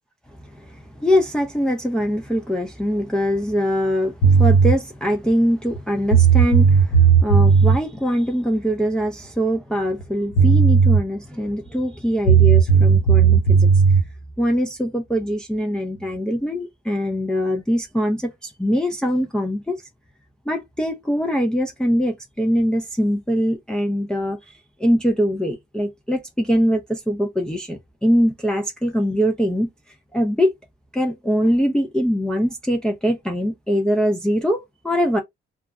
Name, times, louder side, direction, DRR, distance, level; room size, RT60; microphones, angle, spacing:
voice 1, 0.4-13.7 14.4-19.8 20.5-29.7 30.1-30.5 30.9-35.2, equal, 5° left, 0.5 m, -22 dB
sound 1, 4.2-4.7 5.8-5.9 6.1-7.8 10.0-10.1 10.4-11.0 12.3-14.0, right 6 dB, 80° left, 1.0 m, -14 dB
2.3 x 2.0 x 3.5 m
cardioid pair, 90°, 20 cm